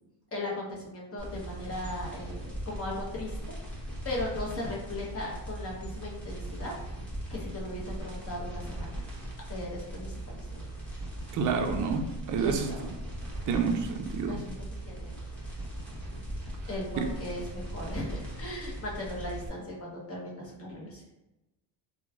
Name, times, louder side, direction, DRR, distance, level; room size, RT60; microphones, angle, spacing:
voice 1, 0.3-6.7 7.3-9.1 9.5-10.7 12.4-12.9 14.3-15.2 16.6-21.1, left 1 dB, 30° left, -3 dB, 0.9 m, -38 dB
sound 1, 1.2-19.5, right 1 dB, 5° left, 1.1 m, -39 dB
voice 2, 11.3-12.7 13.5-14.4 17.0-17.1, right 5 dB, 40° right, 4 dB, 0.4 m, -29 dB
3.0 x 2.3 x 2.3 m, 0.96 s
cardioid pair, 90°, 48 cm